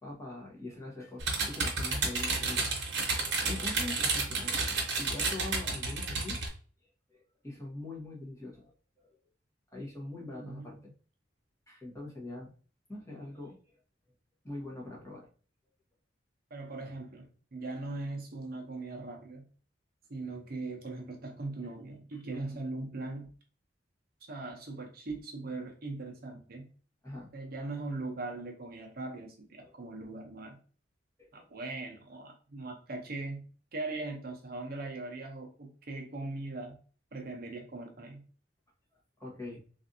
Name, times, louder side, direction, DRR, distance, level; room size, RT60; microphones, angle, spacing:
voice 1, 0.0-2.7 3.4-6.4 7.1-8.7 9.0-9.1 9.7-10.9 11.7-12.5 12.9-13.6 14.4-15.3 22.3-22.6 27.0-27.3 29.6-29.7 31.2-31.5 39.2-39.6, left 2 dB, 15° left, -4 dB, 1.1 m, -43 dB
sound 1, 1.2-6.5, right 3 dB, 70° right, 0.9 m, -31 dB
voice 2, 10.3-10.8 16.5-19.5 20.1-23.3 24.3-26.7 27.3-30.6 31.3-33.4 33.7-36.8 37.1-38.2, right 2 dB, 55° right, 2 dB, 0.7 m, -40 dB
3.4 x 2.5 x 2.6 m, 0.40 s
head